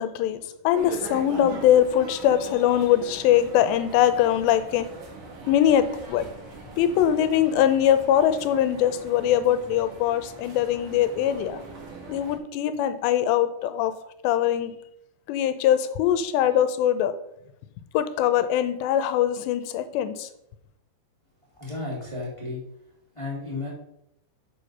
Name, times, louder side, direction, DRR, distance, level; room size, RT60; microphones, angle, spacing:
voice 1, 0.0-4.9 5.5-6.3 6.8-11.6 12.1-13.9 14.2-14.8 15.3-17.1 17.9-20.3, left 10 dB, 90° left, 11 dB, 2.9 m, -22 dB
sound 1, 0.7-12.4, right 3 dB, 55° right, 1.4 m, -41 dB
voice 2, 21.6-22.6 23.1-23.7, left 3 dB, 15° left, -5 dB, 1.3 m, -33 dB
7.4 x 6.6 x 5.4 m, 0.79 s
omnidirectional pair, 4.9 m